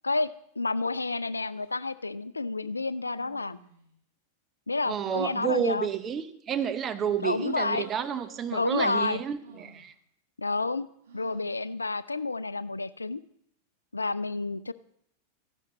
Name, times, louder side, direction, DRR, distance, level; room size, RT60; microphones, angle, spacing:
voice 1, 0.0-3.6 4.7-5.9 7.2-7.9 8.5-9.2 10.4-10.9 11.1-13.2 13.9-14.7, left 3 dB, 80° left, 0.4 m, -30 dB
sound 1, 1.5-1.7 3.0-3.9 5.0-5.6 7.0-8.7 9.4-9.9 11.1-11.5, right 5 dB, 65° right, 2.4 m, -50 dB
voice 2, 4.9-9.9, right 8 dB, 25° right, 0.8 m, -30 dB
15.0 x 11.0 x 3.0 m
figure-of-eight pair, 90°, 0 cm